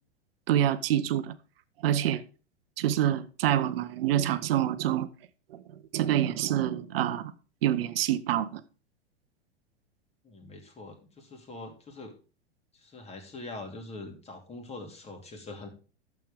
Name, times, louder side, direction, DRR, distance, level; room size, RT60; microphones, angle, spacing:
voice 1, 0.5-1.4 1.8-2.2 2.8-5.1 5.5-5.6 5.9-7.3 7.6-8.6, right 11 dB, 55° right, 1.0 m, -26 dB
voice 2, 10.2-12.2 12.7-15.7, left 2 dB, 20° left, 2.6 m, -43 dB
11.5 x 7.6 x 3.6 m
figure-of-eight pair, 100°, 35 cm